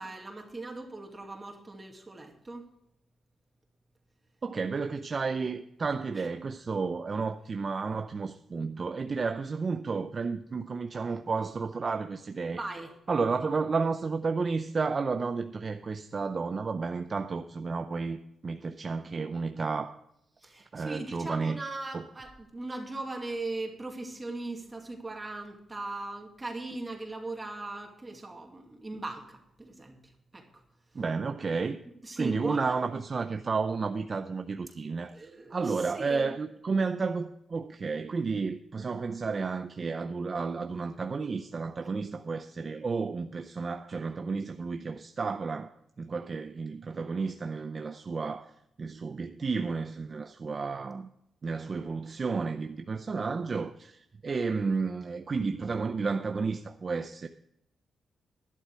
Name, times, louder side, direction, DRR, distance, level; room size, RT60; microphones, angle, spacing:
voice 1, 0.0-2.7 6.2-6.3 12.5-12.9 20.4-30.6 32.0-32.8 35.1-36.3, right 2 dB, 20° right, 2.3 m, -39 dB
voice 2, 4.4-12.6 13.1-18.2 18.4-20.0 20.7-21.6 21.9-22.0 30.9-31.8 32.2-48.5 48.8-51.1 51.4-57.3, right 4 dB, 40° right, 0.6 m, -32 dB
12.0 x 11.5 x 4.6 m
cardioid pair, 120°, 0 cm